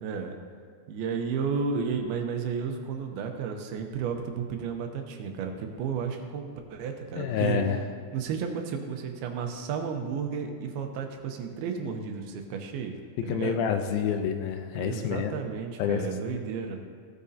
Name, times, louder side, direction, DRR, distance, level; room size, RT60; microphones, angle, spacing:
voice 1, 0.0-0.4 0.9-7.6 8.1-13.0 13.2-13.6 14.8-16.8, right 6 dB, 80° right, 4 dB, 2.7 m, -32 dB
voice 2, 7.2-7.8 13.3-15.4 15.8-16.4, left 7 dB, 80° left, 6 dB, 2.4 m, -28 dB
16.0 x 8.7 x 2.8 m, 2.1 s
omnidirectional pair, 4.4 m